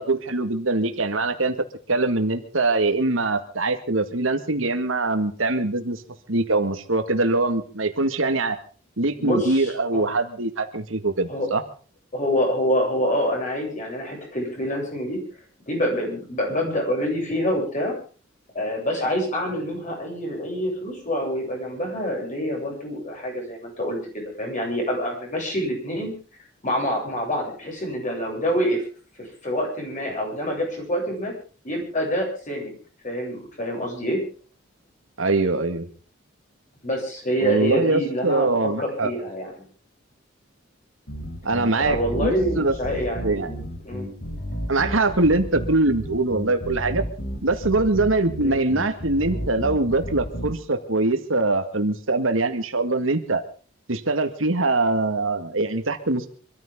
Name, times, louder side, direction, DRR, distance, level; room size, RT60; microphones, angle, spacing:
voice 1, 0.0-1.5 1.9-6.0 6.3-8.6 9.0-11.6 35.2-35.9 37.4-39.1 41.4-42.8 43.2-43.5 44.7-47.0 47.4-53.4 53.9-56.3, right 2 dB, 85° right, 8 dB, 2.0 m, -23 dB
voice 2, 9.2-10.1 11.3-11.5 12.1-15.2 15.7-17.9 18.5-26.1 26.6-28.8 29.2-31.3 31.6-32.8 33.0-34.2 36.8-39.6 41.8-44.1 48.4-48.5, equal, 40° left, 0 dB, 7.9 m, -26 dB
sound 1, 41.1-50.5, equal, 60° left, 4.0 m, -32 dB
25.5 x 14.0 x 3.8 m, 0.39 s
head